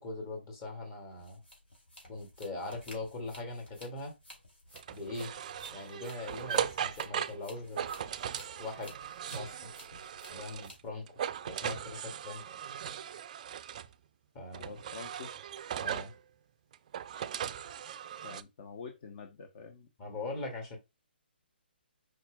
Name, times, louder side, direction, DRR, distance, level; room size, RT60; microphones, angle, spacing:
voice 1, 0.0-1.4 2.1-4.1 4.9-5.3 5.7-7.9 8.6-8.9 9.3-9.6 10.3-11.1 11.5-12.4 14.3-14.7 15.8-16.1 20.0-20.8, left 2 dB, 30° left, 0 dB, 2.1 m, -41 dB
sound 1, 1.1-10.9, left 1 dB, 80° left, 2.5 m, -55 dB
sound 2, 4.7-10.8 11.1-13.9 14.5-16.2 16.7-18.4, right 9 dB, 40° right, 0.3 m, -38 dB
voice 2, 14.6-15.3 18.2-19.9, left 5 dB, 45° left, 4 dB, 0.8 m, -46 dB
5.0 x 4.2 x 2.3 m, 0.23 s
figure-of-eight pair, 140°, 6 cm